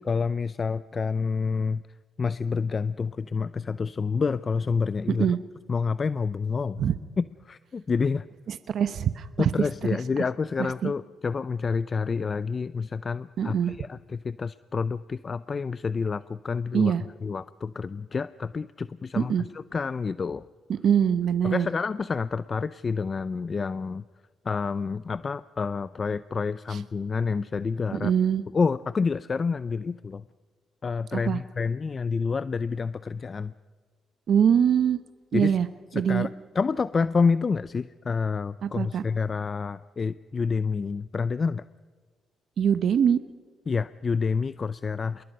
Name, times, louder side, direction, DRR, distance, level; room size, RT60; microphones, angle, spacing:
voice 1, 0.1-1.8 2.2-5.3 5.7-6.8 7.2-8.2 9.4-16.9 17.2-20.5 21.4-24.0 24.4-28.1 28.5-30.2 30.8-33.5 35.3-35.6 35.9-36.3 36.5-41.6 43.7-45.2, left 5 dB, 35° left, 15 dB, 0.5 m, -28 dB
voice 2, 8.7-9.5 10.8-10.9 13.4-13.7 16.7-17.0 19.2-19.4 20.7-21.7 26.7-26.8 27.9-28.4 31.1-31.4 34.3-35.0 35.3-35.7 35.9-36.3 38.6-39.0 42.6-43.2, right 8 dB, 65° right, 11 dB, 1.0 m, -23 dB
28.0 x 21.5 x 5.5 m, 1.5 s
cardioid pair, 90°, 0 cm